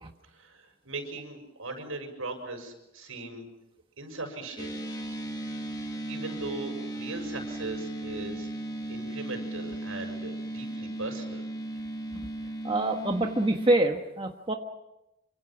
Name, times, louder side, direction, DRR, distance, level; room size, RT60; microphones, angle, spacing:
voice 1, 0.3-3.5 4.0-4.8 6.1-8.5 8.9-11.5, right 2 dB, 80° right, 5 dB, 6.6 m, -39 dB
sound 1, 4.6-13.7, right 1 dB, 20° left, 1.9 m, -36 dB
voice 2, 12.6-14.5, right 1 dB, 25° right, 3 dB, 1.3 m, -25 dB
27.5 x 25.5 x 6.1 m, 0.91 s
head